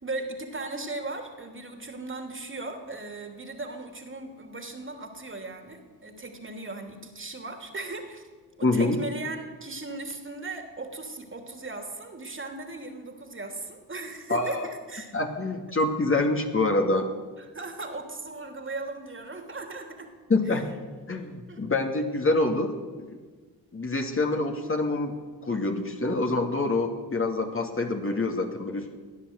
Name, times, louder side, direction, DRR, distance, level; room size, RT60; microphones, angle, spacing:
voice 1, 0.0-8.3 8.6-15.2 17.4-20.1 20.5-20.6 21.5-21.6, right 2 dB, 30° right, 4 dB, 3.0 m, -37 dB
voice 2, 8.6-9.0 14.3-14.7 15.1-17.1 20.3-20.7 21.1-22.7 23.0-23.2 23.7-25.2 25.4-28.9, left 2 dB, 30° left, 3 dB, 2.3 m, -26 dB
17.0 x 10.0 x 8.0 m, 1.4 s
hypercardioid pair, 45°, 42 cm